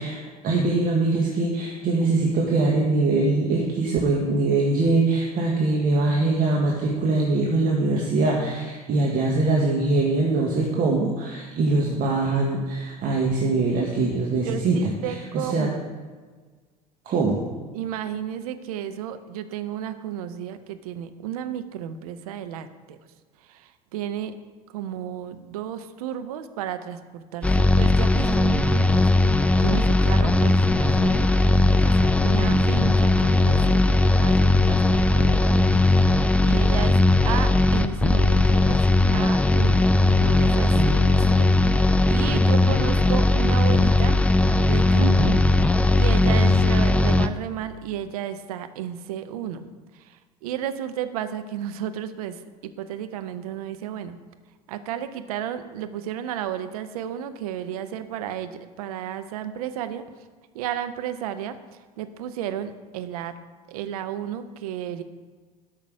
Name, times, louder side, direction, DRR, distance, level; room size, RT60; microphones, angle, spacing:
voice 1, 0.0-15.7 17.0-17.4 40.7-41.0 44.9-45.4, right 3 dB, 45° right, -1 dB, 1.6 m, -23 dB
voice 2, 14.4-15.9 17.7-23.0 23.5-24.3 24.7-38.8 39.1-39.9 40.2-44.2 44.6-45.3 45.9-49.6 49.9-54.2 54.7-60.0 60.5-61.6 62.0-63.3 63.7-65.0, right 10 dB, 70° right, 10 dB, 0.7 m, -33 dB
sound 1, 27.4-47.3, left 2 dB, 5° left, 0.5 m, -19 dB
12.0 x 5.8 x 4.8 m, 1.4 s
figure-of-eight pair, 65°, 20 cm